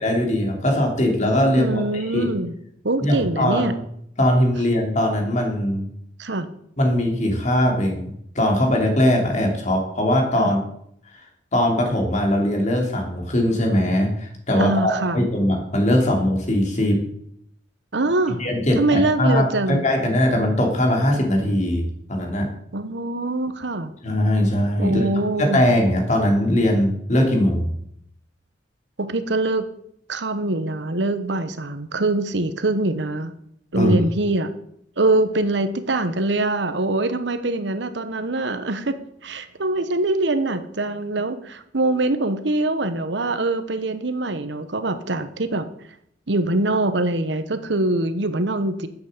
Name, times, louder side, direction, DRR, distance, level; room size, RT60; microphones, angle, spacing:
voice 1, 0.0-2.3 3.0-3.7 4.2-5.9 6.8-10.6 11.5-17.0 18.4-22.5 24.0-25.0 25.4-27.7 33.7-34.0, left 1 dB, 40° left, 2 dB, 3.0 m, -20 dB
voice 2, 1.5-2.5 2.8-3.7 6.2-6.5 10.4-10.5 14.6-15.2 17.9-18.4 18.8-19.9 22.7-23.9 24.8-25.6 29.0-29.7 30.1-33.3 33.7-34.5 35.0-38.9 39.2-45.7 46.3-48.9, right 2 dB, 65° right, 10 dB, 1.1 m, -23 dB
10.5 x 8.1 x 7.9 m, 0.71 s
head